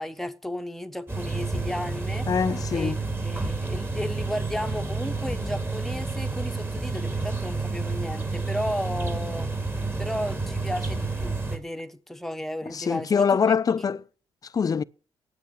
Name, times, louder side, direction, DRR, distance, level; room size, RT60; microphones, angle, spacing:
voice 1, 0.0-2.3 2.7-2.9 3.2-9.5 10.0-13.6, left 1 dB, 5° left, 1.1 m, -34 dB
sound 1, 1.1-11.6, right 3 dB, 20° right, 2.5 m, -30 dB
voice 2, 2.3-3.0 12.7-14.0 14.5-14.8, left 6 dB, 35° left, 0.5 m, -23 dB
8.6 x 8.4 x 9.4 m
cardioid pair, 85°, 10 cm